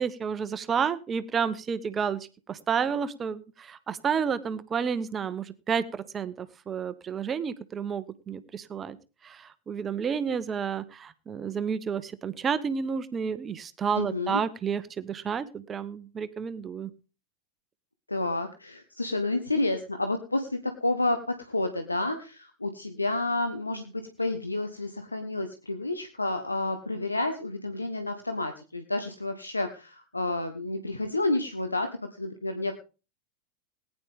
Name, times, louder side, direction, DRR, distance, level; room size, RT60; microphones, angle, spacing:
voice 1, 0.0-9.0 9.2-16.9, right 6 dB, 20° right, 15 dB, 1.0 m, -30 dB
voice 2, 13.9-14.4 18.1-31.9 32.2-32.7, left 2 dB, 85° left, 8 dB, 1.2 m, -30 dB
19.0 x 10.0 x 3.6 m, 0.34 s
figure-of-eight pair, 90°, 0 cm